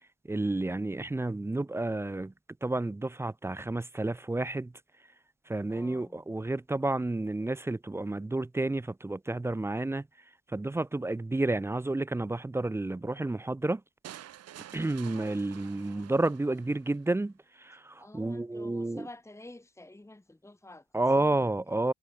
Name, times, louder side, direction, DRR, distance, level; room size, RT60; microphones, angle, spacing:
voice 1, 0.3-2.3 2.6-4.7 5.5-10.0 10.5-13.8 14.7-17.3 17.6-19.1 20.9-21.9, right 2 dB, 10° right, 0.4 m, -30 dB
voice 2, 5.7-6.2 15.1-15.5 18.0-21.5, left 2 dB, 10° left, 2.0 m, -50 dB
sound 1, 14.0-17.0, right 11 dB, 55° right, 0.8 m, -49 dB
cardioid pair, 90°, 30 cm